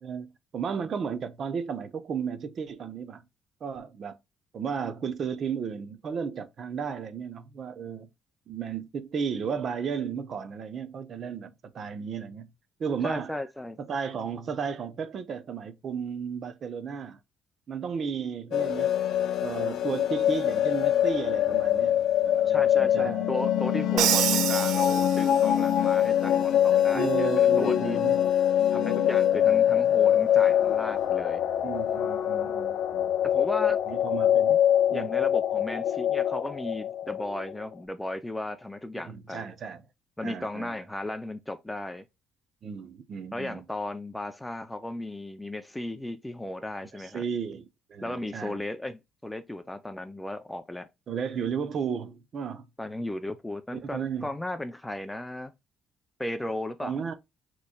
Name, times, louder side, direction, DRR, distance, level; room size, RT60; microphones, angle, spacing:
voice 1, 0.0-3.2 3.6-4.2 4.5-8.1 8.5-12.5 12.8-13.4 13.8-17.2 17.7-18.9 19.2-23.3 26.9-28.2 31.6-33.1 33.9-34.6 34.9-35.1 39.0-39.8 40.2-40.7 42.6-43.6 46.9-48.6 51.1-52.7 53.7-54.3 56.8-57.1, right 6 dB, 40° right, 0.7 m, -34 dB
voice 2, 13.0-13.8 22.5-28.0 28.7-31.4 33.2-33.8 34.5-34.6 34.9-39.5 40.2-42.0 43.3-47.2 48.0-50.9 52.8-55.5 56.2-57.0, left 1 dB, 5° left, 0.4 m, -35 dB
sound 1, 18.5-37.6, left 10 dB, 60° left, 0.6 m, -24 dB
Crash cymbal, 24.0-25.7, right 11 dB, 75° right, 0.4 m, -27 dB
6.6 x 3.1 x 2.2 m
cardioid pair, 150°, 0 cm